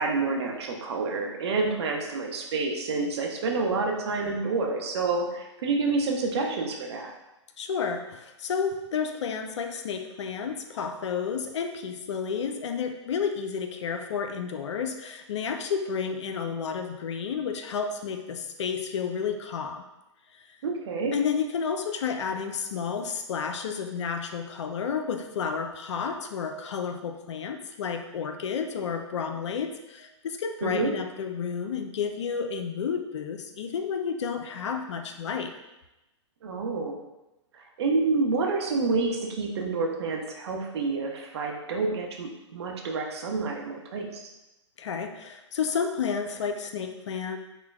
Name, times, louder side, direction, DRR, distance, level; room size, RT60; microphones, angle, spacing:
voice 1, 0.0-7.1 20.6-21.1 30.6-30.9 36.4-37.0 37.5-44.2, right 3 dB, 60° right, 1 dB, 0.6 m, -28 dB
voice 2, 7.6-19.8 20.3-20.4 21.1-35.5 44.8-47.4, left 6 dB, 70° left, 6 dB, 0.4 m, -31 dB
3.0 x 2.1 x 3.4 m, 0.98 s
hypercardioid pair, 120°, 16 cm